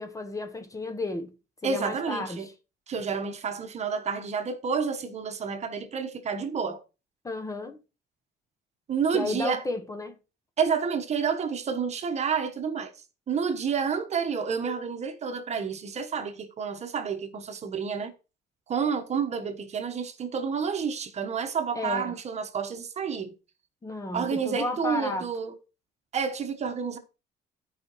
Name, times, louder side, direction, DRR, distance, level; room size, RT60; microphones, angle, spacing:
voice 1, 0.0-1.3 1.6-2.5 7.2-7.8 9.1-10.2 21.7-22.1 23.8-25.3, left 2 dB, 20° left, 0.9 m, -33 dB
voice 2, 1.6-2.5 2.9-6.8 8.9-9.6 10.6-12.9 13.3-18.1 18.7-23.3 24.1-25.5 26.1-27.0, right 6 dB, 40° right, 1.1 m, -29 dB
13.5 x 5.0 x 3.0 m
cardioid pair, 110°, 17 cm